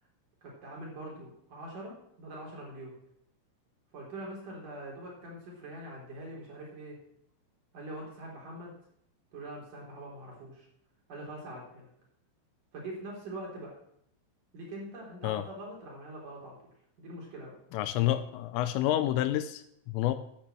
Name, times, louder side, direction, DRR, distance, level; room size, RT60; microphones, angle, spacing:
voice 1, 0.4-3.0 3.9-7.0 7.7-8.7 9.3-10.7 11.1-11.9 12.7-13.8 14.5-16.6 17.0-17.6, right 1 dB, 45° right, -3 dB, 4.4 m, -43 dB
voice 2, 17.7-20.2, left 13 dB, 85° left, 11 dB, 3.2 m, -29 dB
10.0 x 9.1 x 7.7 m, 0.72 s
omnidirectional pair, 6.0 m